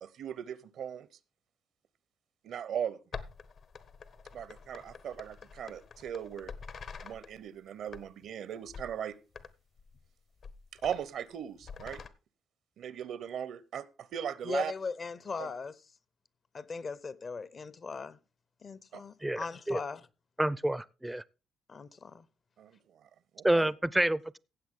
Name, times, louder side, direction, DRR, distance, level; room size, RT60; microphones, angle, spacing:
voice 1, 0.0-1.1 2.4-3.0 4.3-6.5 7.0-9.2 10.8-12.0 12.8-14.7 15.4-15.5 18.9-19.0 22.6-22.8 23.3-23.7, right 9 dB, 70° right, 0.8 m, -38 dB
sound 1, 3.1-7.4 7.8-8.3 8.7-9.0 9.3-9.5 9.8-10.0 10.4-11.0 11.6-12.1, left 5 dB, 60° left, 1.1 m, -46 dB
voice 2, 14.4-15.8 16.5-18.2 18.6-20.1 21.7-22.2, left 4 dB, 40° left, 0.7 m, -39 dB
voice 3, 19.2-19.8 20.4-21.2 23.4-24.4, right 1 dB, 10° right, 0.5 m, -28 dB
15.5 x 7.8 x 3.6 m
cardioid pair, 90°, 0 cm